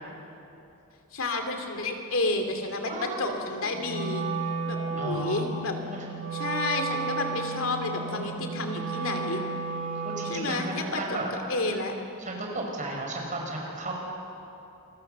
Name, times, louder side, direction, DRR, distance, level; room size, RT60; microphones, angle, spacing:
voice 1, 1.1-4.3 4.7-5.8 6.3-9.4 10.2-11.9, left 2 dB, 65° left, 5 dB, 2.7 m, -30 dB
voice 2, 2.9-3.7 5.0-6.0 8.1-8.3 10.0-11.3 12.2-14.0, right 2 dB, 35° right, 0 dB, 5.7 m, -35 dB
Wind instrument woodwind instrument, 3.8-10.6, right 4 dB, 65° right, 6.7 m, -33 dB
28.0 x 24.0 x 6.8 m, 2.8 s
head